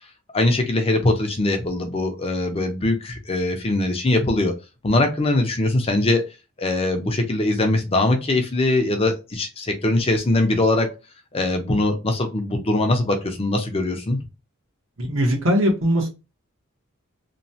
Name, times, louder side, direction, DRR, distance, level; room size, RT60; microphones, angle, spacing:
voice 1, 0.3-4.5 4.8-6.2 6.6-10.9 11.3-14.2, left 2 dB, 25° left, 5 dB, 0.5 m, -21 dB
voice 2, 15.0-16.1, equal, 70° right, 1 dB, 1.1 m, -20 dB
3.0 x 2.1 x 2.7 m, 0.27 s
head